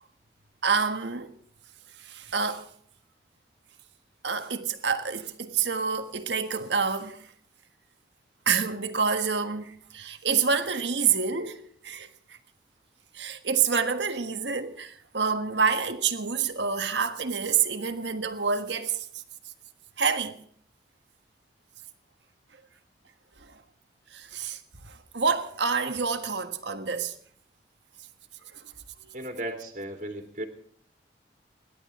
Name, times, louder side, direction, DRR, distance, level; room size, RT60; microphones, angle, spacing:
voice 1, 0.6-1.3 2.0-2.7 4.2-7.3 8.4-12.4 13.1-19.2 20.0-20.4 23.4-23.6 24.1-27.1 28.5-28.6 29.0-29.2, right 6 dB, 80° right, 1.5 m, -28 dB
voice 2, 29.1-30.5, right 1 dB, 45° right, 2.5 m, -35 dB
28.5 x 11.5 x 3.7 m
head